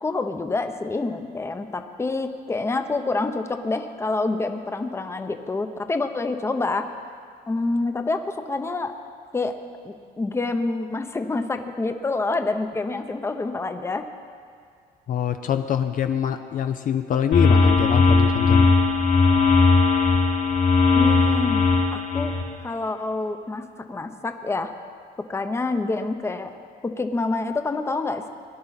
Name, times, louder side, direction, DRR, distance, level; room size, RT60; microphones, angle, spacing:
voice 1, 0.0-6.9 7.5-8.9 9.3-9.5 9.8-14.1 20.9-22.3 22.6-24.7 25.3-26.5 26.8-28.3, left 3 dB, 15° left, 7 dB, 0.8 m, -27 dB
voice 2, 15.1-18.7, left 9 dB, 55° left, 7 dB, 0.6 m, -24 dB
sound 1, 17.3-22.4, left 4 dB, 80° left, 3.5 m, -18 dB
18.5 x 11.0 x 4.1 m, 2.1 s
cardioid pair, 110°, 17 cm